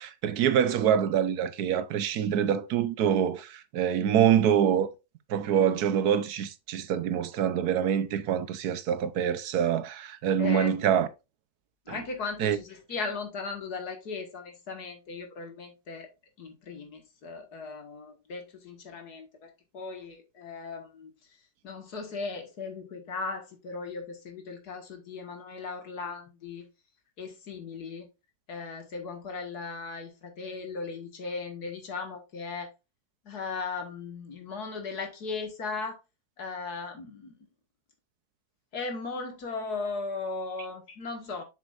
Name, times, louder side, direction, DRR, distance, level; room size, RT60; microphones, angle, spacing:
voice 1, 0.0-4.9 5.3-11.1 11.9-12.0 12.4-12.6, right 9 dB, 75° right, 1.2 m, -25 dB
voice 2, 10.4-10.7 11.9-16.1 16.4-21.1 21.6-26.7 27.2-28.1 28.5-32.7 33.3-36.0 36.4-37.4 38.7-41.4, left 4 dB, 70° left, 2.2 m, -37 dB
7.5 x 6.1 x 2.5 m
omnidirectional pair, 1.7 m